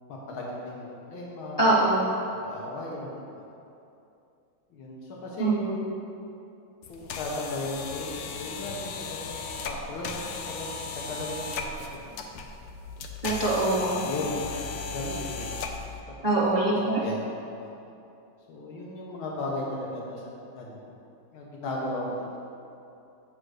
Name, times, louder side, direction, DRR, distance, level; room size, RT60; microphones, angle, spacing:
voice 1, 0.1-1.7 2.3-3.4 4.7-5.9 6.9-10.7 11.1-12.0 14.0-14.6 14.9-15.5 16.2-16.3 16.6-17.7 18.5-20.2 20.5-21.0 21.3-22.4, left 2 dB, 90° left, -3 dB, 2.0 m, -36 dB
voice 2, 1.6-2.0 5.4-5.5 13.2-14.0 16.2-17.0, right 2 dB, 20° left, -10 dB, 1.8 m, -23 dB
sound 1, 6.8-16.0, left 4 dB, 70° left, 0.9 m, -36 dB
8.9 x 3.7 x 6.5 m, 2.7 s
omnidirectional pair, 2.2 m